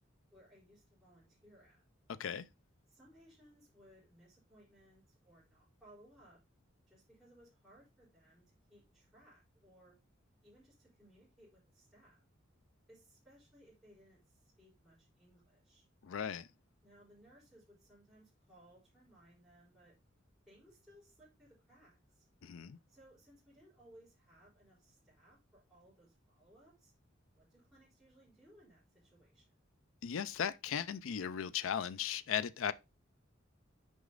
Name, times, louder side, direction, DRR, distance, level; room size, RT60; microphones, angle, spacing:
voice 1, 0.3-1.8 2.9-6.4 6.9-10.0 10.4-12.2 12.9-15.9 16.8-19.9 20.5-22.3 22.9-26.9 27.4-29.6, right 1 dB, ahead, 3.9 m, -63 dB
voice 2, 2.1-2.5 16.0-16.5 22.4-22.8 30.0-32.7, left 8 dB, 75° left, 0.4 m, -37 dB
6.3 x 5.0 x 3.8 m
head